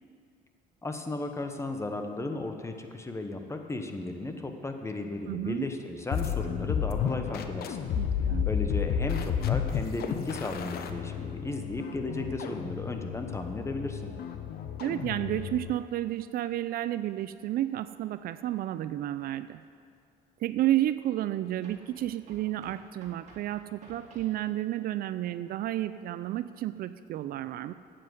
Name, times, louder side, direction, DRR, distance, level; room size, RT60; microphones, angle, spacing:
voice 1, 0.8-7.8 8.5-14.1, left 2 dB, 15° left, 5 dB, 1.0 m, -35 dB
voice 2, 5.3-5.7 7.9-8.5 14.8-19.6 20.4-27.7, right 13 dB, 65° right, 13 dB, 0.4 m, -31 dB
sound 1, 6.1-15.8, left 8 dB, 65° left, 0.8 m, -32 dB
sound 2, 19.2-19.3 21.6-24.4, right 3 dB, 45° right, 2.4 m, -54 dB
9.5 x 7.7 x 8.0 m, 2.3 s
cardioid pair, 110°, 17 cm